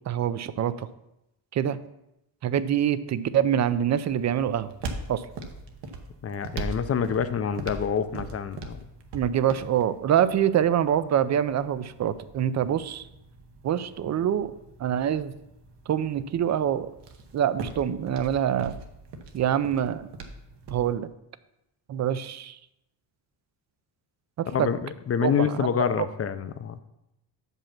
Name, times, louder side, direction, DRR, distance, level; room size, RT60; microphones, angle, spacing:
voice 1, 0.1-0.9 1.5-1.8 2.4-4.7 5.1-5.2 9.1-13.0 13.6-14.5 14.8-15.3 15.9-16.9 17.3-18.8 19.3-20.1 20.7-21.1 21.9-22.6 24.4-24.7 25.2-25.5, right 9 dB, 40° right, 14 dB, 0.5 m, -25 dB
sound 1, 3.9-20.9, right 3 dB, 70° right, 1.2 m, -41 dB
voice 2, 6.2-8.8 24.5-26.8, left 7 dB, 35° left, 12 dB, 0.5 m, -27 dB
7.3 x 5.5 x 5.8 m, 0.87 s
cardioid pair, 120°, 43 cm